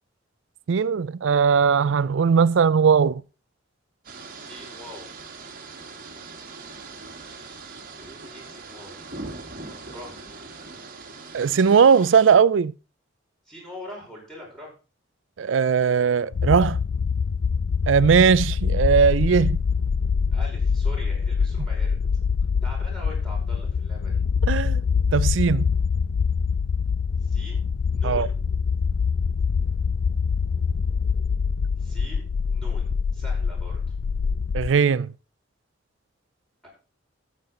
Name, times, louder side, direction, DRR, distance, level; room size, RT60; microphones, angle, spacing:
voice 1, 0.7-3.2 11.3-12.7 15.4-16.8 17.9-19.6 24.5-24.8 25.1-25.7 28.0-28.3 34.5-35.1, right 6 dB, 70° right, 0.4 m, -19 dB
sound 1, 4.0-12.4, right 3 dB, 50° right, 1.6 m, -41 dB
voice 2, 4.3-5.1 7.1-9.1 9.9-10.2 13.5-14.7 20.3-22.0 22.6-24.2 27.2-27.6 27.9-28.4 31.8-33.9 36.6-36.7, left 1 dB, 5° left, 5.1 m, -43 dB
sound 2, 16.3-34.7, left 5 dB, 85° left, 0.4 m, -24 dB
13.0 x 7.5 x 3.8 m
head